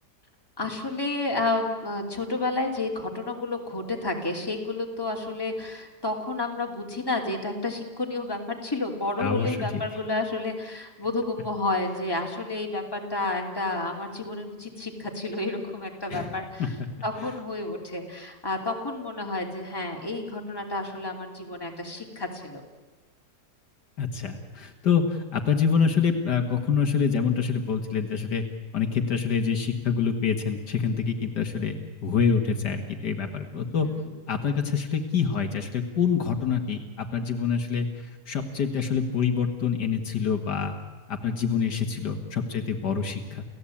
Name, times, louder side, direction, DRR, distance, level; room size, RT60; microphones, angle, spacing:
voice 1, 0.6-16.7 17.0-22.6 33.8-34.1 42.5-42.7, left 2 dB, 15° left, 1 dB, 2.9 m, -30 dB
voice 2, 9.2-9.8 16.1-16.3 16.6-16.9 24.0-28.4 28.7-31.8 32.0-33.9 34.3-37.9 38.3-40.7 41.1-43.4, left 6 dB, 70° left, 5 dB, 2.2 m, -26 dB
29.0 x 15.5 x 8.6 m, 1.2 s
omnidirectional pair, 1.9 m